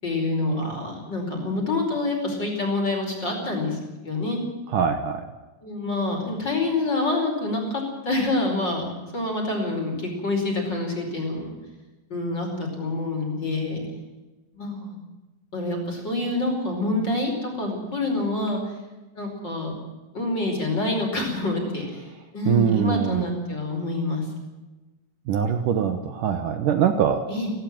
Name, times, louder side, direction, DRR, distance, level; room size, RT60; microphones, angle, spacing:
voice 1, 0.0-4.4 5.6-8.8 9.1-11.5 12.1-13.9 14.5-15.0 15.5-18.6 19.1-19.7 20.1-22.0 22.3-24.2 27.3-27.5, left 2 dB, 25° left, 2 dB, 5.1 m, -27 dB
voice 2, 4.7-5.2 22.5-23.3 25.3-27.2, right 8 dB, 80° right, 8 dB, 1.9 m, -22 dB
17.5 x 17.0 x 9.0 m, 1.1 s
omnidirectional pair, 5.3 m